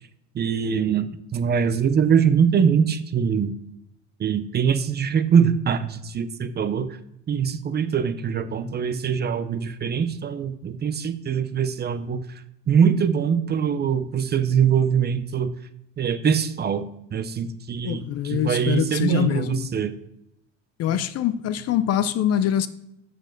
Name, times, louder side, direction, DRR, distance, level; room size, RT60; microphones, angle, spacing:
voice 1, 0.3-3.5 4.2-6.9 7.3-12.2 12.7-15.5 16.0-16.8 17.1-19.9, right 7 dB, 25° right, 0.7 m, -23 dB
voice 2, 17.8-19.7 20.8-22.7, left 10 dB, 40° left, 0.6 m, -24 dB
6.6 x 6.2 x 6.6 m
supercardioid pair, 100°, 37 cm